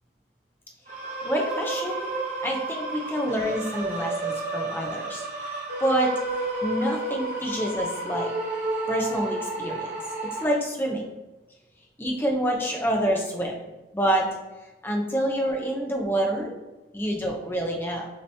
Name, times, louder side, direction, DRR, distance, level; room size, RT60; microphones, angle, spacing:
sound 1, 0.9-10.4, right 2 dB, 40° right, 0.9 m, -31 dB
voice 1, 1.2-2.1 2.4-5.2 5.8-6.1 6.6-8.3 8.9-9.9 10.4-11.0 12.0-13.5 13.9-14.3 14.8-16.5 16.9-18.1, right 1 dB, 10° left, 0 dB, 0.6 m, -27 dB
6.4 x 2.9 x 2.7 m, 1.1 s
head